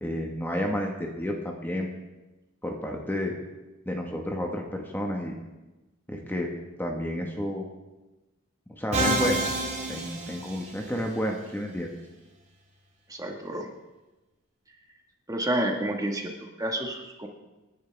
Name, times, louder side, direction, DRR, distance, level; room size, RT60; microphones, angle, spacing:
voice 1, 0.0-1.9 2.6-3.3 3.8-5.3 6.1-6.5 6.8-7.6 8.7-9.4 9.9-12.0, equal, 10° left, 1 dB, 1.4 m, -31 dB
Musical instrument, 8.9-11.0, right 1 dB, 30° right, 2.4 m, -28 dB
voice 2, 13.1-13.7 15.3-16.3 16.6-17.3, right 1 dB, 15° right, 2 dB, 1.6 m, -29 dB
28.0 x 11.0 x 3.5 m, 1.1 s
head